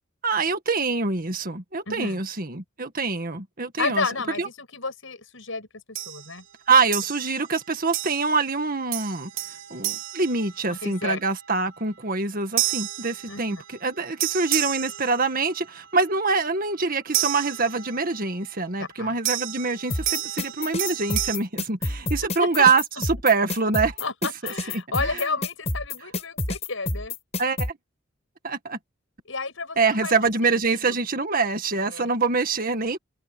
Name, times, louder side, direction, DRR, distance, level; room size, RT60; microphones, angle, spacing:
voice 1, 0.2-4.1 4.4-4.5 6.7-9.3 9.7-24.0 24.4-25.2 27.4-27.8 28.4-28.8 29.8-33.0, right 4 dB, 45° right, 1.9 m, -25 dB
voice 2, 1.9-2.2 3.8-5.7 6.1-6.4 10.7-11.2 13.3-13.4 18.8-19.2 22.4-22.5 24.0-27.2 29.3-30.2 30.7-30.9 31.9-32.1, left 4 dB, 70° left, 7.8 m, -31 dB
sound 1, 6.0-6.3 6.9-7.5 7.9-8.5 8.9-11.1 12.6-13.8 14.2-15.7 17.1-18.2 19.3-21.4, right 13 dB, 70° right, 3.3 m, -30 dB
sound 2, 19.9-27.7, left 2 dB, 30° left, 4.6 m, -28 dB
head